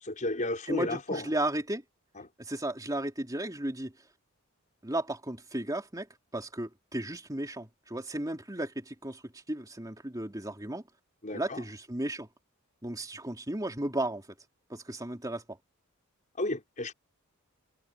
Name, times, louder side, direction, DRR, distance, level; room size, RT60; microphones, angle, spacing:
voice 1, 0.0-1.3 2.2-2.3 11.2-11.6 16.4-16.9, left 2 dB, 35° left, 5.0 m, -33 dB
voice 2, 0.7-1.8 2.4-3.9 4.8-6.1 6.3-10.8 11.3-12.3 12.8-14.3 14.7-15.6, right 1 dB, 15° right, 3.3 m, -34 dB
head